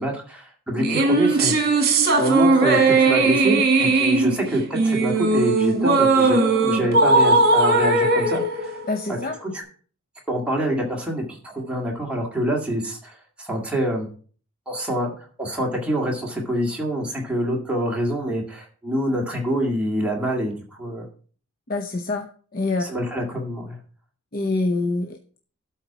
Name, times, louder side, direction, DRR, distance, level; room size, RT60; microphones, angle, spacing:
voice 1, 0.0-1.5 2.2-8.8 9.4-9.5 10.3-14.1 14.7-15.1 15.4-21.1 22.8-23.8, equal, 5° right, -2 dB, 2.1 m, -26 dB
sound 1, 0.8-9.4, right 3 dB, 45° right, 1.8 m, -18 dB
voice 2, 8.9-9.4 21.7-22.8 24.3-25.4, left 2 dB, 40° left, 5 dB, 0.7 m, -26 dB
12.0 x 4.3 x 5.9 m, 0.44 s
head